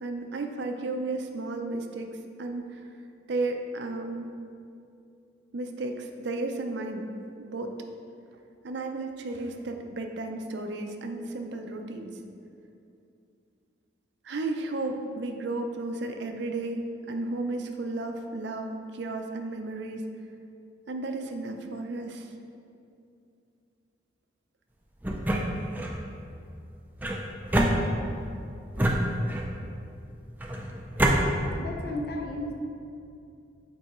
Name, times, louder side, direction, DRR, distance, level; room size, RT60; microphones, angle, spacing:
voice 1, 0.0-2.8 3.3-4.3 5.5-7.1 7.4-7.8 8.6-12.2 14.2-20.0 20.9-22.3, right 2 dB, 65° right, 4 dB, 0.5 m, -33 dB
sound 1, 25.0-26.0 27.0-28.3 28.8-29.6 30.4-31.2, right 1 dB, 10° right, 0.4 m, -26 dB
voice 2, 31.5-32.5, left 1 dB, 55° left, 1 dB, 0.6 m, -34 dB
8.0 x 4.7 x 3.0 m, 2.5 s
head